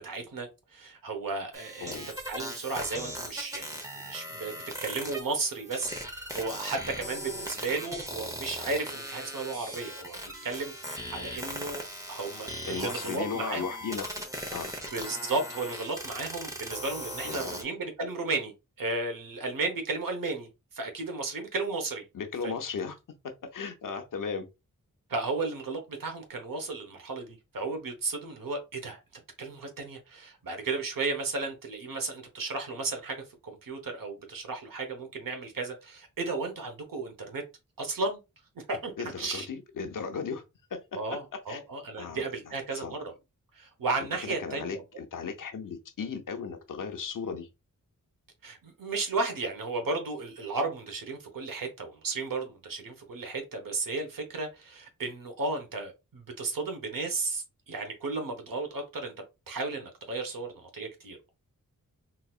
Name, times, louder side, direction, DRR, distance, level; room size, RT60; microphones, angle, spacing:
voice 1, 0.0-11.8 12.1-13.7 14.9-22.0 22.4-22.5 25.1-29.0 29.4-37.4 37.8-38.2 38.7-39.5 40.9-43.0 43.5-44.8 48.4-59.1 59.5-61.3, right 3 dB, 75° right, 1.0 m, -34 dB
sound 1, 1.5-17.6, equal, 10° right, 0.8 m, -39 dB
voice 2, 12.7-14.1 14.5-14.7 17.2-17.6 22.1-22.9 23.5-24.5 39.0-40.4 40.7-41.2 41.5-41.6 42.0-42.9 44.4-47.5, left 5 dB, 70° left, 0.7 m, -36 dB
3.9 x 2.7 x 2.4 m
wide cardioid pair, 130°, 34 cm